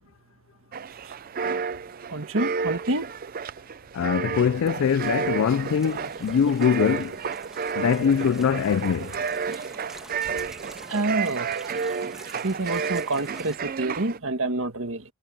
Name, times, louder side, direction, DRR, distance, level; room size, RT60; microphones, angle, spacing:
sound 1, 0.7-14.2, right 6 dB, 40° right, 0.4 m, -31 dB
voice 1, 2.1-3.1 10.9-11.6 12.4-15.0, right 2 dB, 65° right, 1.7 m, -27 dB
voice 2, 3.9-7.2 7.7-9.2, left 7 dB, 60° left, 0.3 m, -23 dB
sound 2, 4.0-13.6, equal, ahead, 1.6 m, -48 dB
head